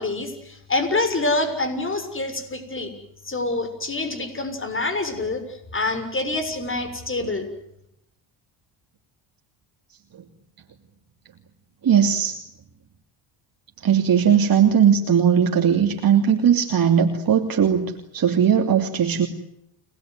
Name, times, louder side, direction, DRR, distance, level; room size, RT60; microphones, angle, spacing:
voice 1, 0.0-2.9 3.2-5.4 5.7-7.5, left 2 dB, 25° left, 10 dB, 6.7 m, -26 dB
voice 2, 11.8-12.4 13.8-19.3, right 8 dB, 45° right, 3 dB, 3.0 m, -18 dB
30.0 x 20.5 x 9.4 m, 0.80 s
cardioid pair, 95°, 50 cm